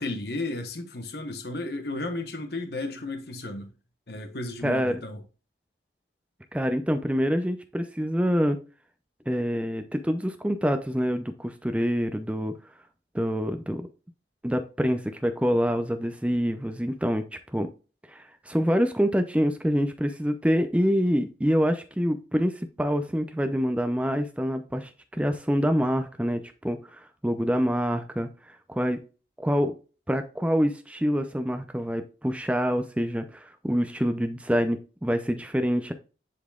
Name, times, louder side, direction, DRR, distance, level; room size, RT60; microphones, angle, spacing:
voice 1, 0.0-3.7 4.1-5.2, left 2 dB, 55° left, 1.1 m, -33 dB
voice 2, 4.6-5.0 6.5-8.6 9.3-12.5 13.1-13.9 14.4-17.2 17.5-17.7 18.1-28.3 28.7-29.0 29.4-29.8 30.1-35.9, equal, 5° right, 0.5 m, -26 dB
10.0 x 4.1 x 2.3 m
head